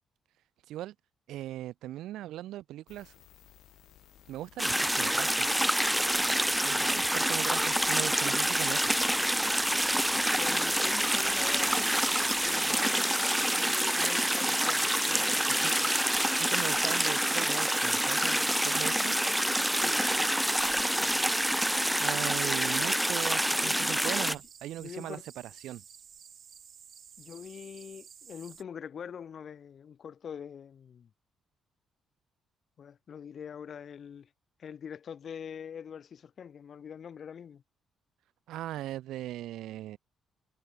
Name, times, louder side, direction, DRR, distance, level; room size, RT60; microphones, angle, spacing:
voice 1, 1.3-3.1 4.3-5.7 6.6-9.0 15.6-15.7 16.4-19.2 22.0-25.2 25.6-25.8 38.5-40.0, right 14 dB, 85° right, 2.9 m, -39 dB
sound 1, 2.9-12.9, left 12 dB, 75° left, 7.9 m, -57 dB
sound 2, 4.6-24.4, right 1 dB, 5° right, 0.4 m, -27 dB
voice 2, 10.4-12.1 12.4-15.9 19.7-20.0 20.9-21.3 23.5-24.1 24.8-25.2 27.2-31.1 32.8-34.3 34.6-37.6, left 7 dB, 55° left, 6.0 m, -44 dB
sound 3, 11.5-28.6, right 7 dB, 55° right, 1.8 m, -49 dB
cardioid pair, 90°, 0 cm